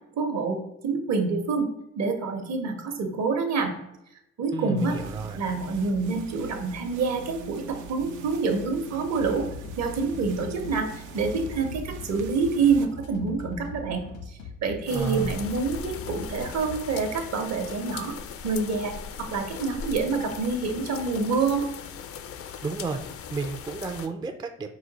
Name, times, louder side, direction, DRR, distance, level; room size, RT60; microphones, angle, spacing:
voice 1, 0.1-1.7 2.0-3.7 4.4-5.0 5.3-9.5 9.8-10.9 11.1-18.2 18.4-21.6, right 4 dB, 60° right, 5 dB, 0.9 m, -27 dB
voice 2, 4.5-5.4 14.9-15.4 22.4-24.7, right 4 dB, 15° right, 5 dB, 0.3 m, -32 dB
sound 1, 4.8-12.9, right 4 dB, 80° right, 0.5 m, -43 dB
sound 2, 9.1-17.1, left 4 dB, 75° left, 1.0 m, -41 dB
sound 3, 14.9-24.1, left 7 dB, 50° left, 0.4 m, -39 dB
5.0 x 2.3 x 4.0 m, 0.84 s
cardioid pair, 90°, 30 cm